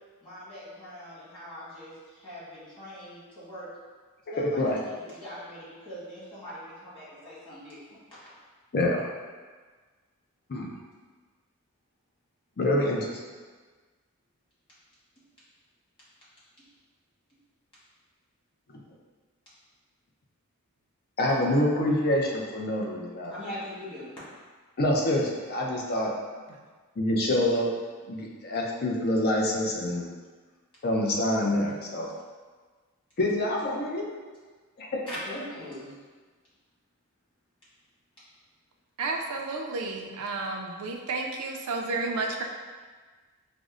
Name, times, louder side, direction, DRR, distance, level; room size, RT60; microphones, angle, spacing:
voice 1, 0.2-3.7 4.3-8.0 23.3-24.2 35.1-35.9, equal, 25° left, -11 dB, 1.4 m, -41 dB
voice 2, 4.3-4.8 8.7-9.1 10.5-10.7 12.6-13.2 21.2-23.3 24.8-26.1 27.0-27.7 28.1-30.1 30.8-32.1 33.2-34.1 34.8-35.0, left 1 dB, 45° left, -2 dB, 0.5 m, -26 dB
voice 3, 39.0-42.4, right 3 dB, 75° right, 2 dB, 0.4 m, -31 dB
5.0 x 2.0 x 2.4 m, 1.4 s
head